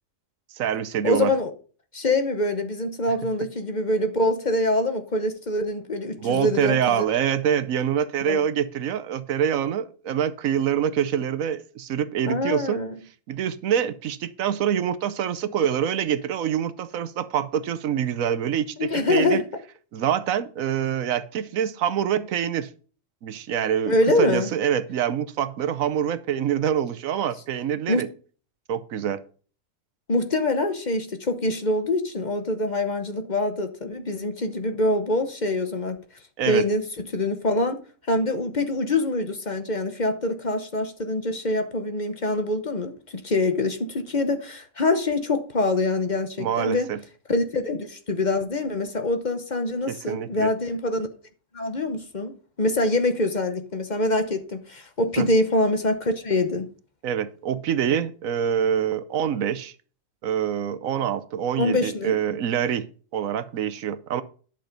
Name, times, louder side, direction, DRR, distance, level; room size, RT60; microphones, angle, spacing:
voice 1, 0.5-1.3 6.2-12.8 13.3-19.4 19.9-22.7 23.2-28.1 28.7-29.2 36.4-36.7 46.4-47.0 49.9-50.5 55.2-55.3 57.0-59.7 60.2-62.9 63.1-64.2, right 9 dB, 85° right, 1.2 m, -25 dB
voice 2, 1.0-1.5 1.9-7.0 8.3-8.4 12.3-13.0 18.8-19.4 23.9-24.5 27.9-28.1 30.1-36.0 36.5-37.8 38.1-46.9 47.3-51.1 51.5-56.7 61.6-62.2, left 2 dB, 40° left, 1.0 m, -25 dB
11.0 x 6.0 x 5.2 m
omnidirectional pair, 1.4 m